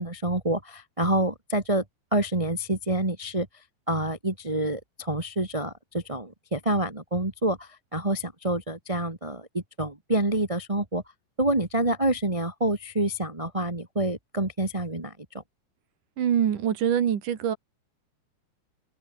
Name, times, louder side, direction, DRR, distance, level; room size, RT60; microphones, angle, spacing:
voice 1, 0.0-1.8 2.1-3.5 3.9-11.0 11.4-15.4, right 1 dB, 20° right, 0.8 m, -27 dB
voice 2, 16.2-17.6, right 9 dB, 55° right, 3.2 m, -24 dB
omnidirectional pair, 4.9 m